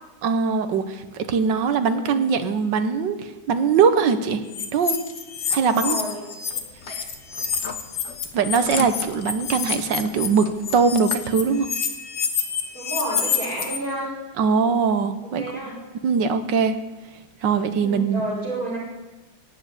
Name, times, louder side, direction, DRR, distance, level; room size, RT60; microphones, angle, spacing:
voice 1, 0.2-4.4 4.7-5.0 5.5-6.0 8.3-11.7 14.4-15.4 16.0-16.8 17.4-18.2, right 5 dB, 65° right, 10 dB, 1.5 m, -21 dB
sound 1, 4.5-6.6 6.9-13.8, left 7 dB, 65° left, 2.2 m, -28 dB
voice 2, 5.6-6.2 6.9-7.0 12.7-14.1 15.2-15.8 17.7-18.8, right 1 dB, 40° right, -4 dB, 5.7 m, -31 dB
sound 2, 6.5-11.7, left 5 dB, 50° left, 0.8 m, -38 dB
17.0 x 7.3 x 10.0 m, 1.1 s
omnidirectional pair, 2.3 m